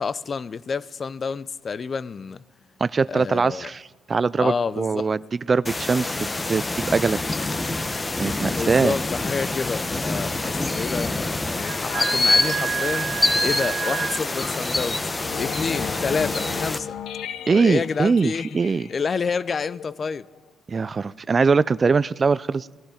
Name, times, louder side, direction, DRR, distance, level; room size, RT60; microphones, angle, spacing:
voice 1, 0.0-2.4 3.1-3.7 4.4-5.1 8.4-13.1 13.4-15.0 15.4-16.9 17.5-18.6 18.9-20.3, left 5 dB, 40° left, 0.5 m, -29 dB
voice 2, 2.8-7.2 8.2-8.9 17.5-18.9 20.7-22.8, right 4 dB, 35° right, 0.3 m, -22 dB
sound 1, 5.7-16.8, left 2 dB, 20° left, 0.9 m, -26 dB
sound 2, 11.6-20.5, left 9 dB, 85° left, 0.7 m, -38 dB
Wind instrument woodwind instrument, 11.7-14.2, right 8 dB, 70° right, 0.8 m, -28 dB
19.0 x 12.0 x 5.0 m
cardioid pair, 90°, 0 cm